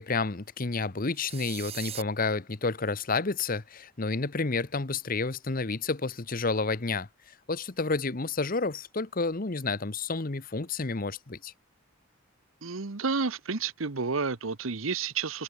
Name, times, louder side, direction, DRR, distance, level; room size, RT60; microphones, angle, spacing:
voice 1, 0.0-7.1 7.5-11.5, left 3 dB, 45° left, 1.1 m, -30 dB
sound 1, 1.1-2.0, right 11 dB, 30° right, 0.4 m, -40 dB
voice 2, 12.6-15.4, right 4 dB, 85° right, 1.1 m, -30 dB
head